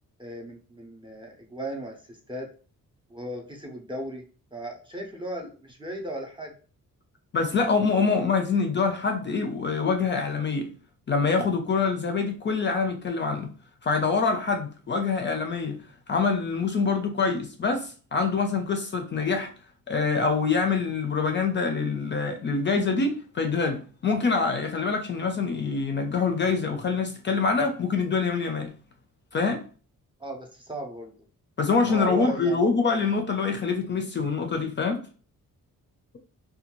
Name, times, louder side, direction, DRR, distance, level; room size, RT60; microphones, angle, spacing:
voice 1, 0.2-2.5 3.1-4.2 4.5-6.5 30.2-31.1 31.8-32.6, right 1 dB, 15° right, 0.5 m, -36 dB
voice 2, 7.3-10.7 11.1-13.5 13.8-15.8 16.1-19.5 19.9-28.7 29.3-29.6 31.6-35.0, left 4 dB, 35° left, 0.4 m, -25 dB
2.5 x 2.2 x 2.9 m
cardioid pair, 120°, 33 cm